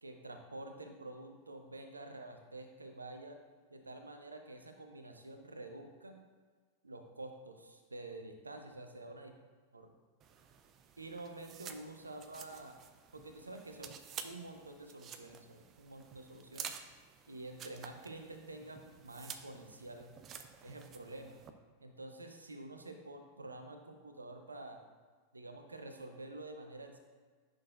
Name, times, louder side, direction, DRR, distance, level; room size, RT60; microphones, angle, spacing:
voice 1, 0.0-3.4 3.7-6.2 6.8-9.4 9.7-9.9 11.0-12.8 13.1-16.7 17.3-20.1 20.6-21.4 21.8-24.8 25.3-27.0, right 2 dB, 80° right, 5 dB, 0.7 m, -48 dB
sound 1, 10.2-21.5, right 7 dB, 30° right, 0.5 m, -51 dB
9.6 x 6.2 x 2.4 m, 1.5 s
figure-of-eight pair, 90°, 0 cm